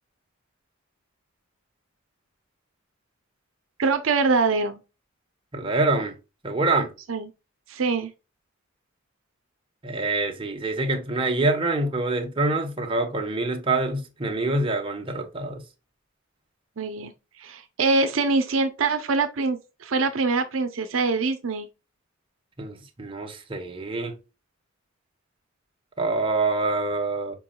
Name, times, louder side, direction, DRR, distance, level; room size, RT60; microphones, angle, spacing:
voice 1, 3.8-4.8 7.1-7.3 7.7-8.1 16.8-17.1 17.4-21.7, right 4 dB, 75° right, 0.6 m, -24 dB
voice 2, 5.5-6.1 6.4-6.9 9.8-15.6 22.6-24.2 26.0-27.3, right 2 dB, 25° right, 1.0 m, -25 dB
5.2 x 4.5 x 2.2 m
head